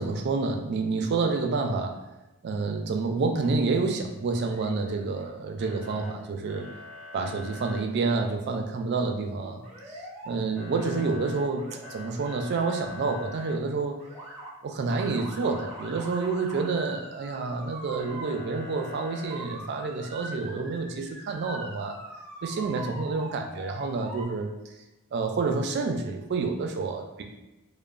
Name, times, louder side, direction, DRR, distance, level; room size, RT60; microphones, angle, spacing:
voice 1, 0.0-2.0 2.4-6.7 7.1-14.0 14.6-22.0 22.4-24.5 25.1-27.2, right 4 dB, 50° right, 4 dB, 0.3 m, -29 dB
Motor vehicle (road) / Siren, 4.3-5.3 5.6-6.1 6.5-7.8 9.6-10.3 10.6-13.5 14.0-14.5 14.9-24.2, equal, ahead, 0.6 m, -42 dB
2.9 x 2.0 x 2.4 m, 1.0 s
head